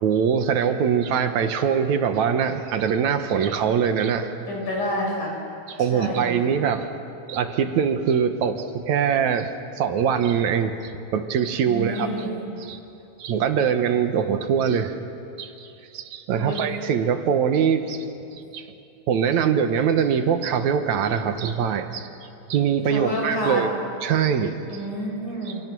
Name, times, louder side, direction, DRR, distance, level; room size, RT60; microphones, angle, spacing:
voice 1, 0.0-4.3 5.7-6.9 7.3-9.5 9.8-12.3 12.6-12.8 13.2-15.0 15.4-15.7 15.9-18.1 18.5-18.6 19.1-22.1 22.5-23.7 24.0-24.6 25.5-25.6, right 7 dB, 75° right, 8 dB, 2.5 m, -23 dB
voice 2, 4.5-5.3 5.9-6.3 11.7-12.3 16.4-16.6 22.9-23.6 24.7-25.6, equal, 90° left, -2 dB, 8.3 m, -28 dB
29.5 x 29.0 x 6.2 m, 2.7 s
omnidirectional pair, 3.5 m